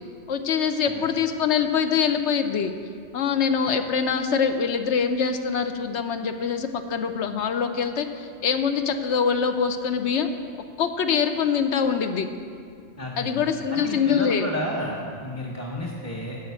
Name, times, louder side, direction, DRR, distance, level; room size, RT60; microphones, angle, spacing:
voice 1, 0.3-2.7 3.1-10.3 10.8-12.3 13.2-14.5, left 6 dB, 65° left, 8 dB, 0.9 m, -24 dB
voice 2, 13.0-13.4 13.7-16.4, left 1 dB, 15° left, -3 dB, 0.8 m, -32 dB
9.3 x 6.4 x 8.2 m, 2.2 s
omnidirectional pair, 1.4 m